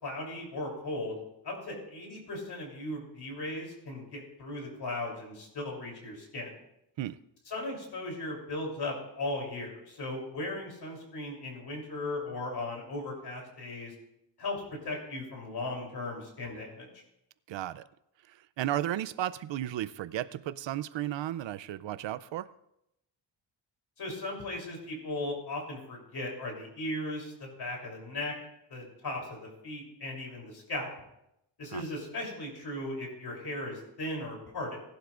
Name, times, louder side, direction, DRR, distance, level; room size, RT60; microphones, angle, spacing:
voice 1, 0.0-1.2 1.4-6.5 7.5-13.9 14.4-16.9 24.0-28.3 28.7-30.9 31.6-34.8, left 2 dB, 60° left, 0 dB, 3.4 m, -37 dB
voice 2, 17.5-17.9 18.3-22.5 31.7-31.8, right 12 dB, 75° right, 17 dB, 0.5 m, -34 dB
19.0 x 11.5 x 2.5 m, 0.83 s
wide cardioid pair, 180°, 45 cm